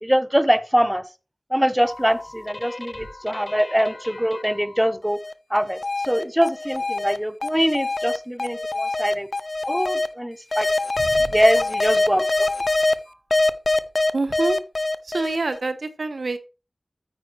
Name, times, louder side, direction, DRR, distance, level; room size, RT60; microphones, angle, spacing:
voice 1, 0.0-1.0 1.5-5.2 5.5-5.8 6.0-9.3 9.7-10.7 11.3-12.5, equal, 5° right, 0.7 m, -23 dB
sound 1, 1.9-4.7 5.1-10.1 10.5-12.9 13.3-15.6, left 2 dB, 50° left, 0.6 m, -24 dB
voice 2, 11.0-11.3 14.1-14.6 15.0-16.4, right 3 dB, 80° right, 0.9 m, -26 dB
9.1 x 8.9 x 3.0 m
wide cardioid pair, 55°, 0 cm